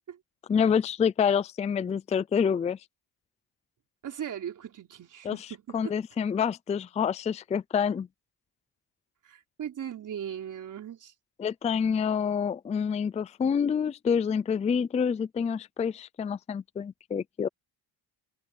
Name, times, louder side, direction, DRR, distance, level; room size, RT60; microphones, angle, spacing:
voice 1, 0.5-2.8 5.2-5.5 5.7-8.1 11.4-17.5, left 7 dB, 20° left, 0.4 m, -27 dB
voice 2, 4.0-5.9 9.2-11.1, right 9 dB, 50° right, 4.3 m, -38 dB
cardioid pair, 145°, 39 cm